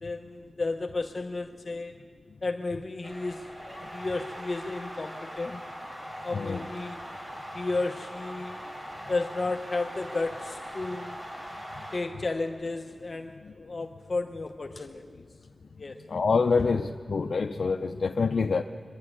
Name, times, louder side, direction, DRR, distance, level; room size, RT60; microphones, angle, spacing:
voice 1, 0.0-1.9 2.4-5.6 6.2-7.0 7.5-8.6 9.1-11.2 11.9-15.3 15.8-16.0 16.6-16.7, left 3 dB, 45° left, 4 dB, 0.9 m, -33 dB
sound 1, 3.0-12.0, equal, 25° right, 5.4 m, -41 dB
voice 2, 16.1-18.6, left 4 dB, 70° left, 5 dB, 0.6 m, -26 dB
24.0 x 12.0 x 9.9 m, 2.1 s
wide cardioid pair, 95°, 0 cm